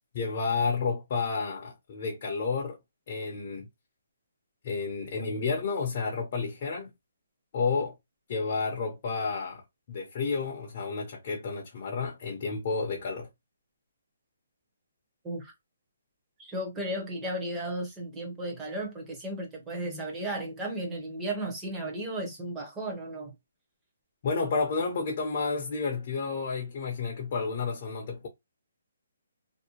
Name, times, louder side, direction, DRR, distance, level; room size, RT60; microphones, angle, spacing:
voice 1, 0.1-2.8 3.1-3.7 4.6-6.9 7.5-7.9 8.3-9.6 9.9-13.3 24.2-28.3, left 4 dB, 35° left, 0.6 m, -31 dB
voice 2, 16.4-23.3, right 1 dB, 10° right, 0.7 m, -34 dB
2.6 x 2.1 x 2.9 m
hypercardioid pair, 165°, 0 cm